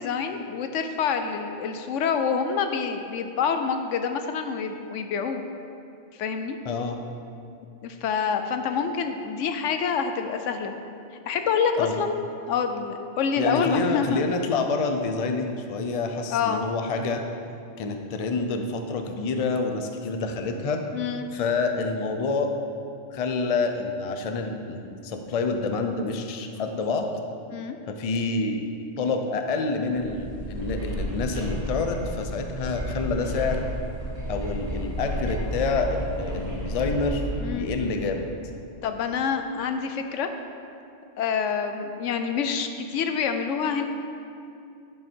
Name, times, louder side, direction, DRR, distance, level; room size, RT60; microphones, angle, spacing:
voice 1, 0.0-5.4 6.2-6.6 7.8-10.7 11.3-12.2 12.5-14.2 16.3-16.6 20.9-21.3 27.5-27.8 37.4-37.7 38.8-40.3 41.2-43.9, left 6 dB, 90° left, 7 dB, 1.0 m, -27 dB
voice 2, 6.6-7.0 11.8-12.0 13.4-17.2 17.8-20.8 21.3-22.5 23.1-27.1 27.9-28.6 29.0-33.7 34.3-37.2 37.5-38.3, left 3 dB, 40° left, 5 dB, 0.5 m, -27 dB
sound 1, 29.8-38.4, equal, 60° right, 1.8 m, -32 dB
11.0 x 5.5 x 4.5 m, 2.6 s
omnidirectional pair, 1.2 m